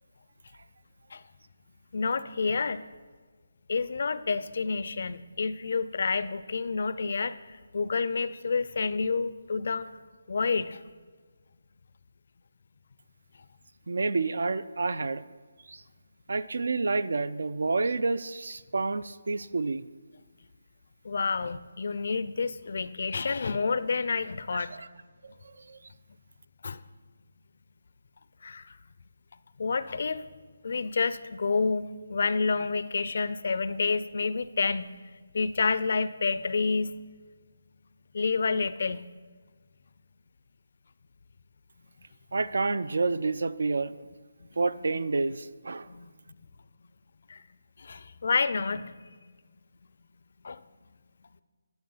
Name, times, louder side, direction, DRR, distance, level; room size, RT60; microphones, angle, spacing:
voice 1, 1.9-2.8 3.7-9.9 10.3-10.8 21.0-24.7 26.6-26.8 28.4-28.7 29.6-30.3 30.6-34.9 35.3-37.0 38.1-39.0 45.9-46.1 47.3-47.4 47.8-48.9 50.4-50.6, left 4 dB, 55° left, 14 dB, 0.4 m, -29 dB
voice 2, 13.9-15.2 15.7-15.8 16.3-19.8 24.7-24.9 25.2-25.8 42.3-44.0 44.6-45.9, right 3 dB, 70° right, 16 dB, 0.4 m, -29 dB
10.5 x 6.1 x 5.6 m, 1.5 s
hypercardioid pair, 170°, 0 cm